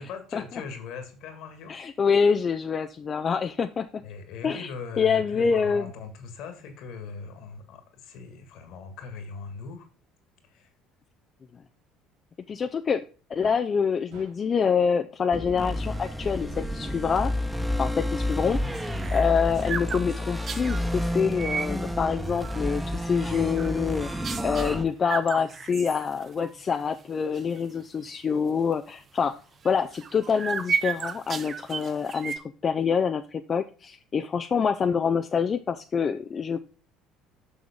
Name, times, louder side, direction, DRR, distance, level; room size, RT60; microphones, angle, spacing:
voice 1, 0.0-1.8 4.0-9.9 10.4-10.7, left 5 dB, 65° left, 1.9 m, -40 dB
voice 2, 1.7-4.0 4.4-4.7 5.0-5.9 12.5-13.0 13.3-17.3 17.8-29.3 29.6-36.6, left 6 dB, 35° left, 0.5 m, -26 dB
sound 1, 13.4-13.8 14.1-14.7 15.9-17.6 19.3-21.1 23.4-25.5, right 3 dB, 75° right, 2.7 m, -51 dB
sound 2, 15.3-24.8, left 1 dB, 5° right, 1.2 m, -30 dB
sound 3, 18.4-20.8 21.3-21.7 22.2-22.8 23.2-23.8 24.2-24.7 25.0-26.5 26.8-26.9 27.3-27.6 28.1-28.2 29.6-32.4, right 6 dB, 40° right, 0.8 m, -34 dB
7.0 x 6.2 x 3.6 m
hypercardioid pair, 60°, 0 cm